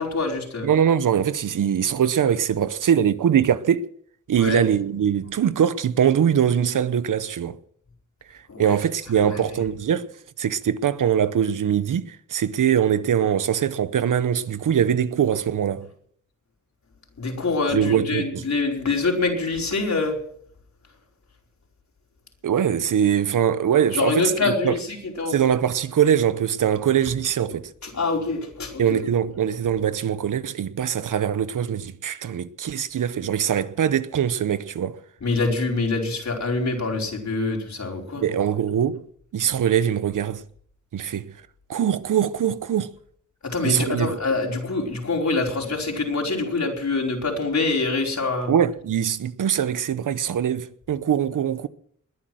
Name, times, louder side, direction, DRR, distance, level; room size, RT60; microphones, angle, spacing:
voice 1, 0.0-0.7 4.4-4.6 8.5-8.8 9.2-9.4 17.2-20.2 23.9-25.4 27.8-29.0 35.2-38.2 43.4-48.5, left 3 dB, 60° left, 4.9 m, -25 dB
voice 2, 0.6-3.9 4.3-7.6 8.6-10.1 10.4-15.9 17.7-18.4 22.4-24.8 25.3-27.7 28.8-35.0 38.2-39.1 39.3-40.4 40.9-41.3 41.7-42.9 43.6-44.2 48.5-51.7, right 8 dB, 85° right, 0.8 m, -22 dB
21.0 x 10.5 x 6.3 m
cardioid pair, 65°, 31 cm